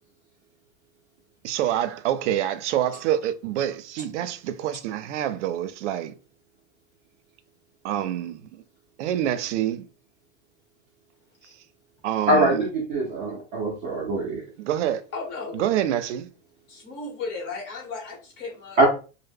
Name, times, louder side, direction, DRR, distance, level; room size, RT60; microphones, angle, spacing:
voice 1, 1.4-6.1 7.8-8.6 9.0-9.9 12.0-12.6 14.6-15.0 15.5-16.3, right 11 dB, 80° right, 0.5 m, -26 dB
voice 2, 12.3-14.4 18.8-18.9, right 1 dB, 20° right, 0.4 m, -22 dB
voice 3, 15.1-15.6 16.7-18.8, left 4 dB, 30° left, 0.9 m, -35 dB
2.1 x 2.0 x 3.3 m
supercardioid pair, 160°, 36 cm